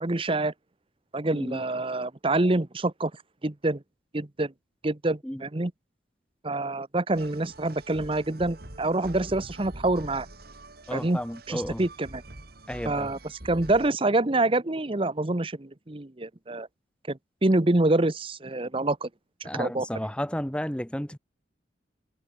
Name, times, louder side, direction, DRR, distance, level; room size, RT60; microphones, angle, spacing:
voice 1, 0.0-0.5 1.1-3.1 3.4-3.8 4.1-4.5 4.8-5.7 6.4-10.3 10.9-11.2 11.5-12.2 12.8-13.2 13.4-16.7 17.1-19.1 19.4-19.9, right 2 dB, 30° right, 0.9 m, -26 dB
voice 2, 1.3-1.6 5.2-5.4 10.9-11.8 12.7-13.1 19.4-21.2, equal, 5° left, 1.2 m, -32 dB
sound 1, 7.1-13.9, right 1 dB, 55° right, 2.7 m, -45 dB
head